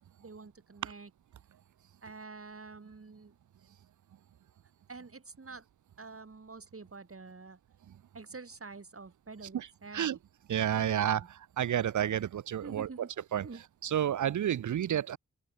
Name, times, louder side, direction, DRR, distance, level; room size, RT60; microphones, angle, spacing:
voice 1, 0.2-1.1 2.0-3.7 4.9-5.7 6.0-7.6 8.1-10.2 10.7-11.3 12.6-13.1 13.4-13.6, right 4 dB, 45° right, 3.7 m, -47 dB
voice 2, 10.5-11.2 11.6-13.1 13.3-13.5 13.8-15.2, right 10 dB, 75° right, 0.5 m, -30 dB
wide cardioid pair, 100°, 30 cm